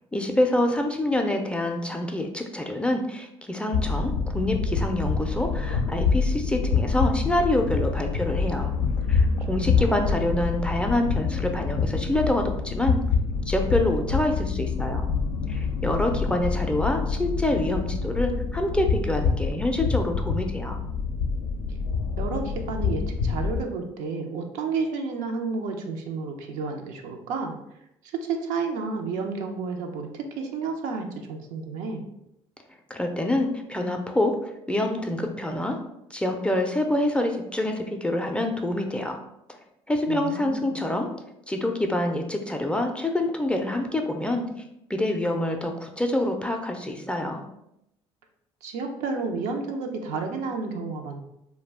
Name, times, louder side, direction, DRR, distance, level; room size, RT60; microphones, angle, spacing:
voice 1, 0.1-8.7 9.1-13.0 13.5-15.1 15.5-20.8 32.9-35.8 36.1-39.2 39.9-41.1 41.5-44.5 44.9-47.4, left 1 dB, 10° left, 4 dB, 0.4 m, -26 dB
sound 1, 3.7-23.6, left 5 dB, 80° left, 0.4 m, -26 dB
voice 2, 9.5-10.2 22.2-27.6 28.0-32.0 40.1-40.8 48.6-51.2, right 4 dB, 75° right, 3 dB, 0.5 m, -31 dB
2.3 x 2.1 x 3.3 m, 0.82 s
hypercardioid pair, 60°, 13 cm